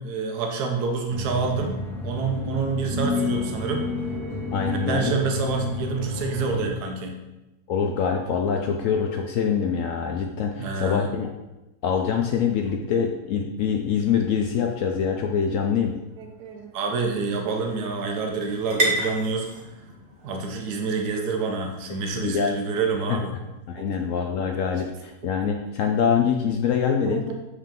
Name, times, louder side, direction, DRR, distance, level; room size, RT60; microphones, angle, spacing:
voice 1, 0.0-3.9 4.7-7.2 10.6-11.1 12.7-12.8 16.2-19.5 20.2-23.3 23.8-23.9 27.1-27.3, right 4 dB, 85° right, 3 dB, 1.3 m, -27 dB
sound 1, 1.1-6.7, left 3 dB, ahead, 2.0 m, -30 dB
voice 2, 4.5-5.1 7.7-11.3 11.8-15.9 22.1-22.5 23.1-23.2 23.7-27.3, left 7 dB, 70° left, 3 dB, 0.8 m, -24 dB
sound 2, 15.2-23.0, right 1 dB, 40° right, 1.3 m, -34 dB
7.3 x 3.6 x 3.7 m, 1.0 s
omnidirectional pair, 1.7 m